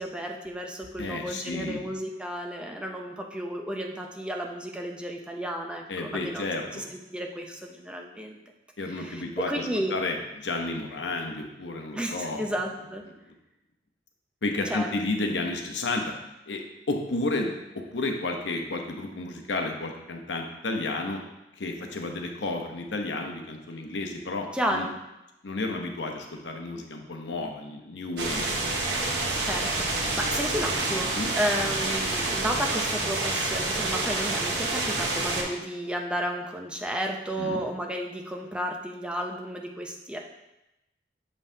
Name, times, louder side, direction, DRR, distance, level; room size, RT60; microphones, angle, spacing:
voice 1, 0.0-6.5 6.7-8.4 8.9-9.9 11.9-13.0 14.7-14.9 24.5-24.9 29.3-40.2, equal, 5° right, 1 dB, 0.6 m, -32 dB
voice 2, 1.0-1.9 5.9-6.8 8.8-12.5 13.3-13.4 14.4-16.1 16.5-21.2 21.6-24.9 25.4-29.0 31.1-31.3 37.4-37.6, left 2 dB, 85° left, 3 dB, 0.8 m, -32 dB
sound 1, 28.2-35.4, right 2 dB, 80° right, 1.0 m, -28 dB
7.2 x 5.4 x 2.7 m, 0.94 s
head